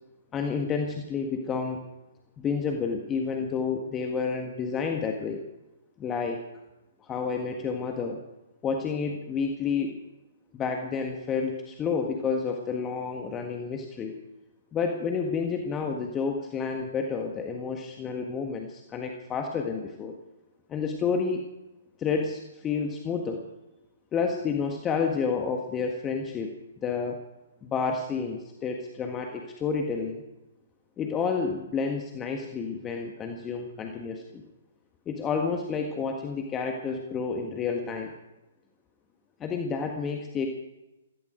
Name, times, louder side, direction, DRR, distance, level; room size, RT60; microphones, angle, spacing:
voice 1, 0.3-1.8 2.4-5.4 6.0-6.4 7.0-8.2 8.6-10.0 10.5-14.1 14.7-20.1 20.7-21.4 22.0-23.4 24.1-27.2 27.6-30.2 31.0-34.4 35.1-38.1 39.4-40.5, left 5 dB, 20° left, 3 dB, 1.6 m, -30 dB
16.5 x 15.0 x 5.1 m, 1.0 s
figure-of-eight pair, 120°, 0 cm